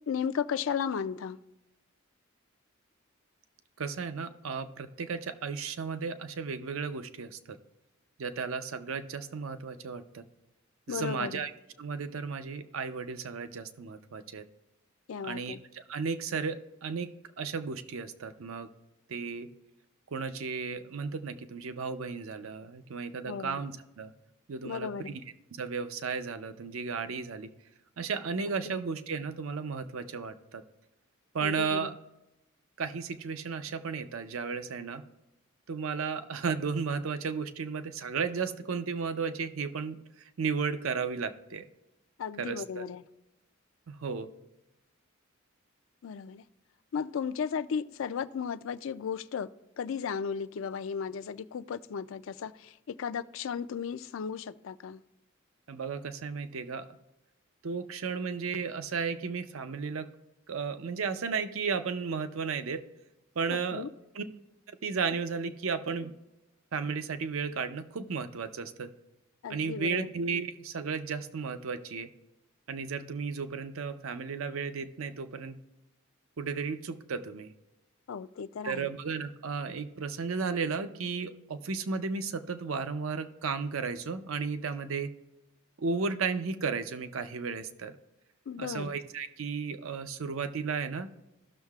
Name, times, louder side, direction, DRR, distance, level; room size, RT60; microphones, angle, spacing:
voice 1, 0.1-1.4 10.9-11.4 15.1-15.6 23.2-23.6 24.6-25.2 28.7-28.8 31.4-32.0 42.2-43.0 46.0-46.4 46.9-49.5 49.8-55.0 63.5-63.9 69.4-70.1 78.1-78.9 88.5-88.9, left 7 dB, 65° left, 13 dB, 0.4 m, -35 dB
voice 2, 3.8-7.4 8.2-10.2 10.9-11.5 11.8-14.4 15.2-17.1 17.4-18.7 19.1-19.5 20.1-24.1 24.5-25.1 25.5-27.5 28.0-30.6 31.3-31.9 32.8-35.0 35.7-40.0 40.4-41.7 42.4-42.9 43.9-44.3 55.7-56.9 57.6-60.1 60.5-62.8 63.4-63.8 64.2-64.3 64.8-66.1 66.7-68.9 69.5-72.1 72.7-75.6 76.4-77.5 78.6-85.1 85.8-87.9 88.6-91.1, right 5 dB, 75° right, 10 dB, 0.6 m, -34 dB
16.0 x 6.4 x 2.4 m, 0.96 s
head